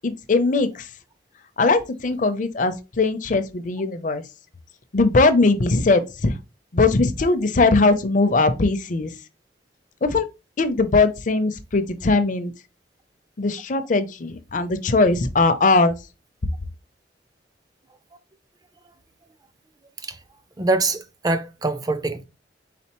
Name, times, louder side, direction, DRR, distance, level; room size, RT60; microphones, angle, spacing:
voice 1, 0.0-0.9 1.6-4.2 4.9-6.3 6.7-9.1 10.0-10.3 10.6-12.5 13.4-16.0, left 3 dB, 45° left, 0.5 m, -20 dB
voice 2, 20.6-22.3, right 3 dB, 20° right, 0.4 m, -24 dB
4.2 x 3.8 x 2.9 m
head